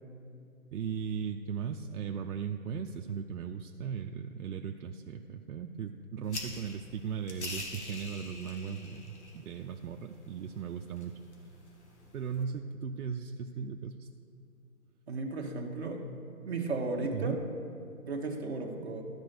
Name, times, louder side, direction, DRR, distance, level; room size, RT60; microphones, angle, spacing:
voice 1, 0.7-11.2 12.1-14.1 17.1-17.4, right 7 dB, 85° right, 4 dB, 0.6 m, -37 dB
sound 1, 6.2-12.4, left 2 dB, 50° left, 1.4 m, -46 dB
voice 2, 15.1-16.0 16.5-17.4 18.1-19.0, right 3 dB, 45° right, 0 dB, 1.2 m, -34 dB
12.5 x 4.4 x 6.6 m, 2.6 s
hypercardioid pair, 175°, 44 cm